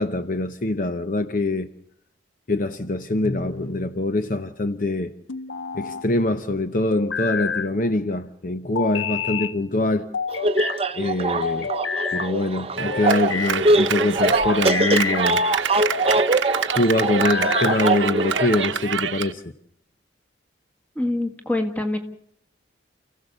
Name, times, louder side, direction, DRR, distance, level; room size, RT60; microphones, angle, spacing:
voice 1, 0.0-1.7 2.5-5.1 5.7-10.1 10.9-11.7 12.1-15.4 16.7-19.4, left 2 dB, 45° left, 9 dB, 0.9 m, -24 dB
sound 1, 3.2-3.9 5.3-6.1 6.9-7.7 8.8-9.5 10.1-10.8 11.4-12.3 12.9-13.6 14.3-15.3 15.8-16.3 17.1-17.9, left 6 dB, 85° left, 0.8 m, -28 dB
sound 2, 10.3-18.7, right 2 dB, 30° right, 0.8 m, -23 dB
Clapping, 12.8-19.3, right 7 dB, 80° right, 0.9 m, -27 dB
voice 2, 20.9-22.0, left 1 dB, 10° left, 5 dB, 1.7 m, -25 dB
29.0 x 16.0 x 6.9 m, 0.72 s
head